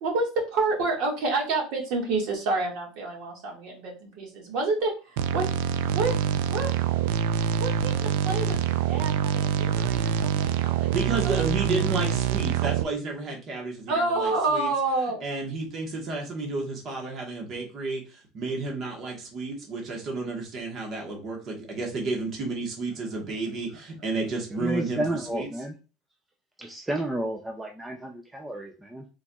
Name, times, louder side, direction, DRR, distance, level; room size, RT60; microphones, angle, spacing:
voice 1, 0.0-5.5 5.9-6.2 6.5-6.8 7.4-10.9 11.2-11.4 13.9-15.2, right 3 dB, 50° right, -1 dB, 1.8 m, -28 dB
sound 1, 5.2-12.8, right 9 dB, 85° right, 0.3 m, -25 dB
voice 2, 10.9-14.7 15.2-25.0 25.3-25.5, right 3 dB, 30° right, 0 dB, 1.3 m, -31 dB
voice 3, 24.5-25.7 26.6-29.1, right 1 dB, 5° right, 2 dB, 0.4 m, -31 dB
4.5 x 4.0 x 2.3 m, 0.33 s
cardioid pair, 180°, 0 cm